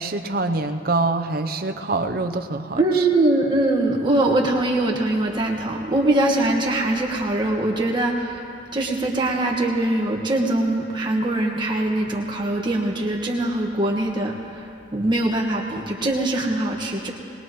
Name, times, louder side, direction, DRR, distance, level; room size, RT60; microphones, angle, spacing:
voice 1, 0.0-3.1, right 3 dB, 50° right, 6 dB, 0.8 m, -25 dB
voice 2, 2.8-8.4 8.7-14.6 14.9-17.1, right 2 dB, 25° right, -1 dB, 1.6 m, -22 dB
21.5 x 20.5 x 3.2 m, 2.5 s
head